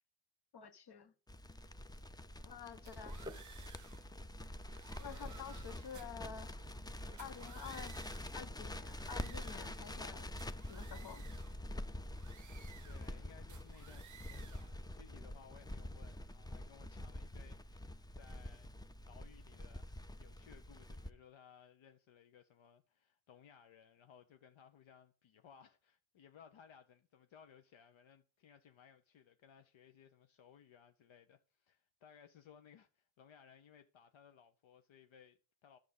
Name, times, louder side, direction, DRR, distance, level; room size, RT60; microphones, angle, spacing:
voice 1, 0.5-1.1 2.4-3.2 5.0-6.6 7.2-7.9 8.3-10.3 10.7-11.2 14.4-14.5, left 7 dB, 50° left, 1.2 m, -49 dB
Crackle, 1.3-21.1, left 1 dB, 10° left, 0.4 m, -47 dB
sound 1, 2.9-4.1 4.6-6.3 7.1-8.4 8.8-10.1 10.4-11.6 12.1-13.2 13.5-14.8, right 9 dB, 40° right, 0.6 m, -59 dB
sound 2, 3.0-9.6, left 1 dB, 10° right, 1.0 m, -59 dB
voice 2, 5.2-5.6 12.8-35.8, left 7 dB, 70° left, 0.9 m, -62 dB
11.0 x 6.6 x 5.4 m
cardioid pair, 110°, 49 cm